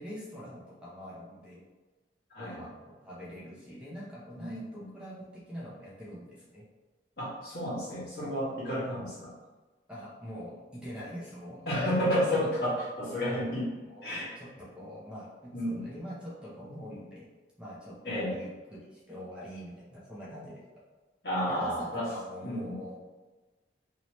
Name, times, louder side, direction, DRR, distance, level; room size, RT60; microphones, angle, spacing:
voice 1, 0.0-1.6 2.4-6.6 9.9-11.6 13.9-17.3 17.6-20.6 21.5-23.0, equal, 5° right, -8 dB, 0.7 m, -44 dB
voice 2, 4.4-4.9 7.2-9.3 11.6-13.7 14.0-14.3 15.5-15.8 18.0-18.4 21.2-22.1 22.4-22.8, equal, 60° left, -8 dB, 1.4 m, -31 dB
3.1 x 2.9 x 3.0 m, 1.2 s
head